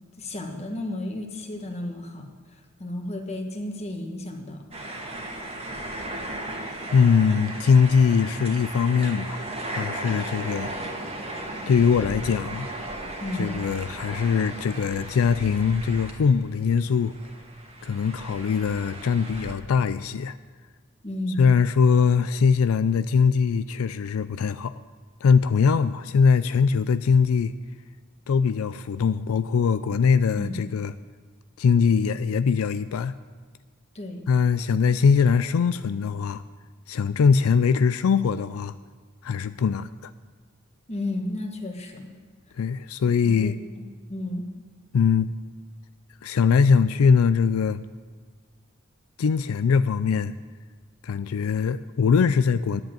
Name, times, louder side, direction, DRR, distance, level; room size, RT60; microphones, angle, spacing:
voice 1, 0.2-4.6 13.2-13.6 21.0-21.5 30.4-30.6 33.9-34.3 40.9-42.1 43.2-44.5, left 1 dB, 30° left, 3 dB, 1.5 m, -33 dB
sound 1, 4.7-16.6 16.9-19.5, right 1 dB, 30° right, 1.7 m, -36 dB
voice 2, 6.9-9.4 9.7-10.7 11.7-12.7 13.4-17.1 17.8-20.4 21.4-24.8 25.2-27.5 28.3-30.9 31.6-33.2 34.3-36.4 36.9-38.7 39.2-40.1 42.6-43.6 44.9-45.3 46.2-47.8 49.2-50.3 51.0-52.8, left 6 dB, 85° left, 13 dB, 0.4 m, -21 dB
11.0 x 7.7 x 8.8 m, 1.5 s
head